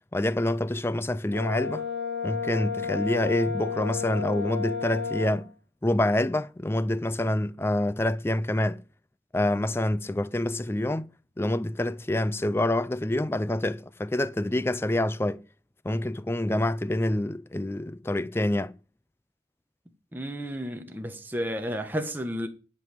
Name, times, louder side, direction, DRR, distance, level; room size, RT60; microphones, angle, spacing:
voice 1, 0.1-1.8 2.2-5.5 5.8-8.8 9.3-11.1 11.4-15.4 15.8-18.7, left 1 dB, 15° left, 0.4 m, -27 dB
Brass instrument, 1.3-5.4, left 5 dB, 85° left, 1.9 m, -32 dB
voice 2, 20.1-22.5, equal, 10° right, 1.1 m, -32 dB
11.0 x 5.4 x 7.7 m
head